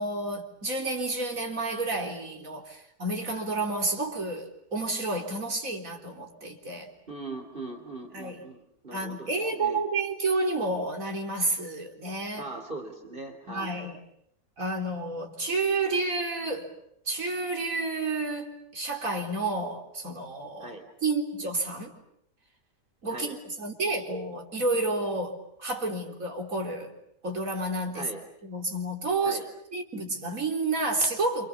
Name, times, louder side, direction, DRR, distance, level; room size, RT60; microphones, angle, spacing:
voice 1, 0.0-6.9 8.1-8.4 8.9-12.4 13.5-14.0 14.6-16.7 17.1-20.8 21.0-21.9 23.0-26.9 27.2-28.1 28.4-29.4 29.7-31.5, right 2 dB, 60° right, 2 dB, 4.3 m, -30 dB
voice 2, 7.1-9.8 12.4-13.9 20.6-20.9 23.1-23.3 27.9-28.2 29.2-29.5, right 2 dB, 35° right, 5 dB, 3.4 m, -40 dB
29.5 x 27.5 x 7.1 m, 0.75 s
omnidirectional pair, 1.6 m